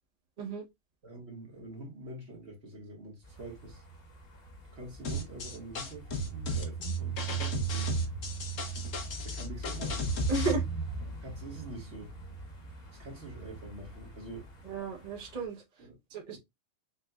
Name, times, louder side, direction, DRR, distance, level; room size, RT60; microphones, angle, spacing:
voice 1, 1.0-3.8 4.7-7.9 9.2-10.1 11.2-12.2 12.9-14.5 15.8-16.0, right 2 dB, 60° right, 1.9 m, -45 dB
sound 1, 3.2-15.4, right 4 dB, 50° left, 1.5 m, -38 dB
sound 2, 5.0-10.5, left 1 dB, 80° left, 1.4 m, -36 dB
voice 2, 10.3-10.6 14.7-15.6 16.1-16.4, right 3 dB, 35° right, 1.0 m, -33 dB
6.3 x 2.6 x 2.3 m
omnidirectional pair, 1.3 m